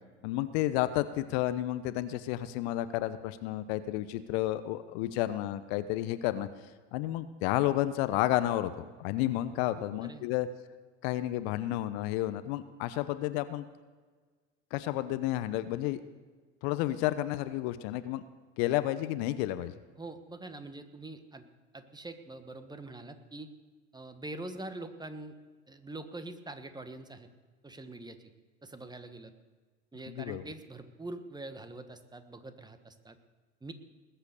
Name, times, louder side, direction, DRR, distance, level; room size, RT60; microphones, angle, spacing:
voice 1, 0.2-6.5 6.9-10.5 11.0-13.6 14.7-16.0 16.6-18.2 18.6-19.7 30.1-30.4, left 14 dB, 55° left, 13 dB, 0.9 m, -31 dB
voice 2, 9.5-10.3 20.0-21.4 21.7-23.5 23.9-25.3 25.7-27.3 27.6-28.3 28.6-29.3 29.9-33.2 33.6-33.7, right 2 dB, 10° right, 9 dB, 1.4 m, -44 dB
20.0 x 8.0 x 6.8 m, 1.4 s
hypercardioid pair, 80°, 36 cm